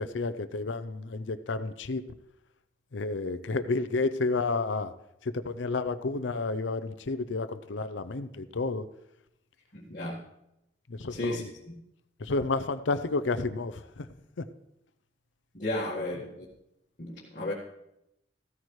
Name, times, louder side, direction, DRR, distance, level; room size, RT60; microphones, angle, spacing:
voice 1, 0.0-2.0 2.9-4.9 5.2-8.9 10.9-11.5 12.2-14.1 14.4-14.5, left 3 dB, 75° left, 12 dB, 0.6 m, -31 dB
voice 2, 9.7-10.2 11.1-11.4 15.5-16.5 17.0-17.5, left 1 dB, 45° left, -5 dB, 1.8 m, -33 dB
15.5 x 13.5 x 3.2 m, 0.84 s
head